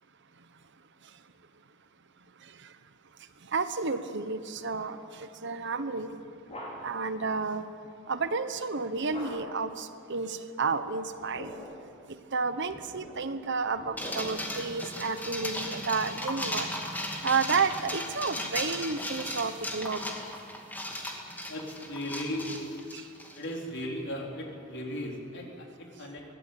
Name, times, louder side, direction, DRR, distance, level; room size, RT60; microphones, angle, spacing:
voice 1, 3.5-6.1 6.8-7.7 8.1-11.5 12.1-16.7 17.2-20.2 22.9-23.1, right 4 dB, 55° right, 11 dB, 1.1 m, -31 dB
sound 1, 5.9-7.1 9.1-9.7 11.1-11.9 12.7-14.6, equal, 30° left, 5.6 m, -44 dB
sound 2, 14.0-23.5, left 1 dB, 10° left, 2.5 m, -36 dB
voice 2, 21.5-22.7 23.4-26.2, equal, 60° left, 0 dB, 4.1 m, -36 dB
22.0 x 17.5 x 8.8 m, 2.4 s
head